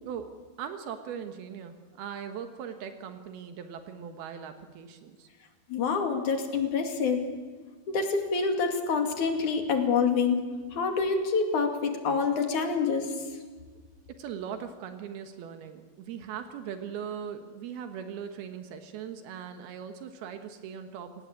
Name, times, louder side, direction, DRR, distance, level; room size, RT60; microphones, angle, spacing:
voice 1, 0.0-5.3 14.2-21.3, right 8 dB, 85° right, 7 dB, 3.3 m, -40 dB
voice 2, 5.7-7.3 7.9-10.4 10.7-13.1, left 5 dB, 55° left, 4 dB, 3.8 m, -27 dB
28.5 x 18.5 x 8.5 m, 1.5 s
omnidirectional pair, 4.3 m